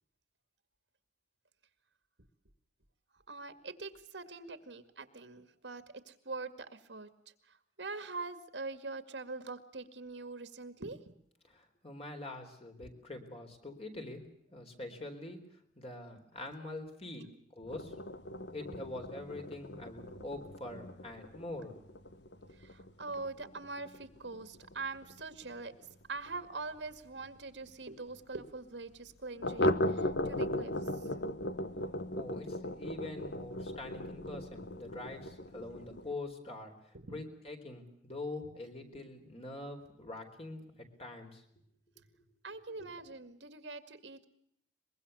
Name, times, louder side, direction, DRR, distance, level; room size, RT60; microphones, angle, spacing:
voice 1, 3.3-7.1 7.5-11.0 12.8-12.9 17.2-17.3 20.2-20.3 22.6-25.7 26.1-31.1 36.9-37.2 38.9-39.0 42.4-44.2, right 3 dB, 85° right, 10 dB, 2.2 m, -43 dB
voice 2, 11.5-14.2 14.5-17.3 17.6-17.9 18.5-21.7 32.1-36.7 37.1-41.4 42.8-42.9, left 2 dB, 35° left, 4 dB, 4.2 m, -44 dB
sound 1, 17.7-26.9 27.2-27.3 27.6-27.7 28.1-28.2 29.4-36.1, left 1 dB, 75° left, 1.2 m, -38 dB
23.5 x 22.0 x 7.0 m, 0.72 s
head